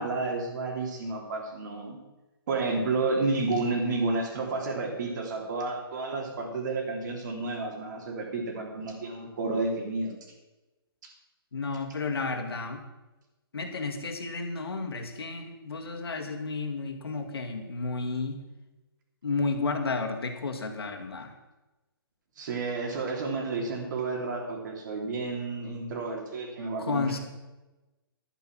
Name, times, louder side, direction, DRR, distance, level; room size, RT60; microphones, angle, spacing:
voice 1, 0.0-2.0 2.5-10.1 22.4-27.2, right 3 dB, 50° right, 2 dB, 3.0 m, -31 dB
voice 2, 11.5-12.8 13.5-18.4 19.2-21.3 26.8-27.2, left 3 dB, 80° left, 4 dB, 2.0 m, -32 dB
11.5 x 8.6 x 6.1 m, 1.1 s
hypercardioid pair, 150°, 13 cm